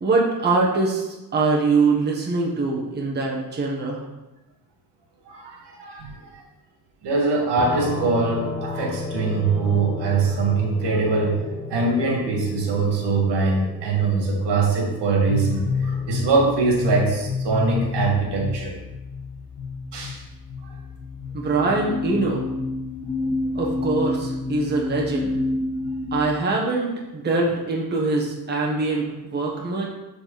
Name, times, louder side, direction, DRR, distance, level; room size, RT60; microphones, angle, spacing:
voice 1, 0.0-4.0 21.3-22.5 23.5-25.3 26.1-29.9, right 3 dB, 25° right, -2 dB, 1.2 m, -23 dB
voice 2, 5.3-6.4 7.0-11.4 11.7-18.7 19.9-20.2 20.6-20.7, right 4 dB, 85° right, 0 dB, 2.1 m, -23 dB
sound 1, 7.6-17.1, left 3 dB, 15° left, 0.9 m, -34 dB
sound 2, 15.3-26.2, left 3 dB, 80° left, 1.3 m, -29 dB
6.9 x 6.7 x 4.1 m, 1.0 s
cardioid pair, 175°, 41 cm